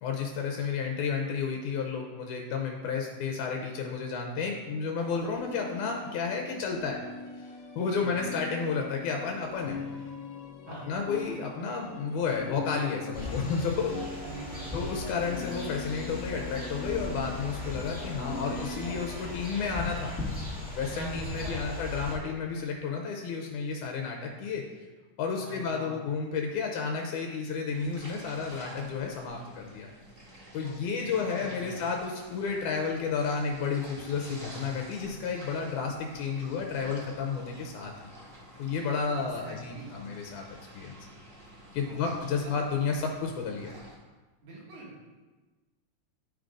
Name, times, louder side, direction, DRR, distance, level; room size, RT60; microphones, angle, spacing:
voice 1, 0.0-7.0 7.8-9.8 10.7-14.3 14.7-20.2 20.7-24.6 25.2-29.9 30.5-37.9 38.6-40.5 40.7-41.0 41.7-43.7, left 5 dB, 90° left, 2 dB, 2.2 m, -32 dB
sound 1, 5.0-19.2, left 3 dB, 75° left, 1.3 m, -42 dB
sound 2, 13.1-22.2, left 2 dB, 10° left, 0.5 m, -38 dB
voice 2, 14.2-14.7 20.9-21.7 25.4-26.0 30.6-31.8 39.2-40.0 41.8-42.2 42.4-42.5 44.4-45.1, right 1 dB, 75° right, -5 dB, 3.4 m, -44 dB
sound 3, 27.7-44.0, equal, 35° right, 1.4 m, -50 dB
10.0 x 3.9 x 4.9 m, 1.3 s
omnidirectional pair, 3.5 m